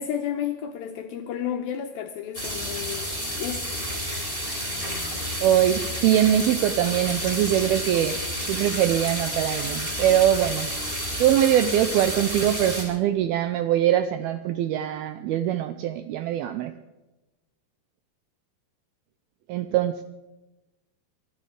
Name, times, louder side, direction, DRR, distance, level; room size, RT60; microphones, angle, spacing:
voice 1, 0.0-3.1 3.4-3.9, left 9 dB, 75° left, 5 dB, 2.2 m, -32 dB
sound 1, 2.3-12.8, equal, 15° right, 3.8 m, -30 dB
voice 2, 5.4-8.2 8.5-10.7 11.2-16.7 19.5-20.0, right 11 dB, 80° right, 10 dB, 2.2 m, -22 dB
23.5 x 12.0 x 4.9 m, 1.0 s
omnidirectional pair, 5.1 m